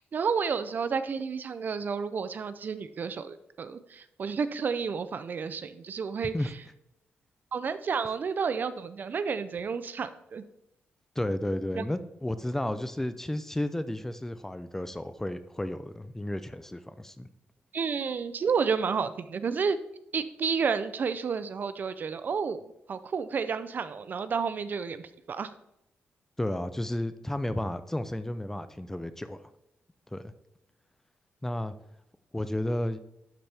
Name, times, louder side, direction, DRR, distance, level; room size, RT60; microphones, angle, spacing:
voice 1, 0.1-6.3 7.5-10.4 11.8-11.9 17.7-19.8 20.1-25.5, right 6 dB, 50° right, 13 dB, 0.5 m, -31 dB
voice 2, 11.2-17.3 26.4-29.4 30.1-30.2 31.4-31.7 32.3-33.0, left 1 dB, 10° left, 12 dB, 0.4 m, -32 dB
12.0 x 4.4 x 3.4 m, 0.83 s
cardioid pair, 95°, 4 cm